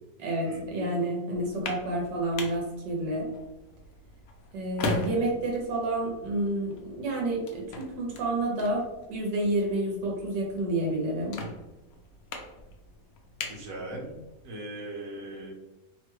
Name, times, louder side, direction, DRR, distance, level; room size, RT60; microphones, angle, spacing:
voice 1, 0.2-3.3 4.5-11.4, right 1 dB, 80° right, -2 dB, 1.4 m, -29 dB
sound 1, 1.3-14.4, left 3 dB, 70° left, 0.8 m, -40 dB
voice 2, 13.5-14.1 14.4-15.5, right 1 dB, 55° right, -3 dB, 1.2 m, -39 dB
3.2 x 2.2 x 3.1 m, 1.0 s
omnidirectional pair, 1.9 m